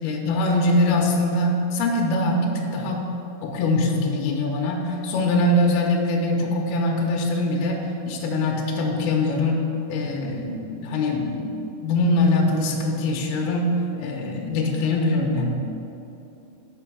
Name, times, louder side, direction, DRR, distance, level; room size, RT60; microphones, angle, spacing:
voice 1, 0.0-3.1 3.4-7.8 8.1-9.6 9.9-11.6 11.8-15.5, left 2 dB, 90° left, 1 dB, 2.3 m, -23 dB
6.2 x 5.2 x 5.9 m, 2.8 s
omnidirectional pair, 5.3 m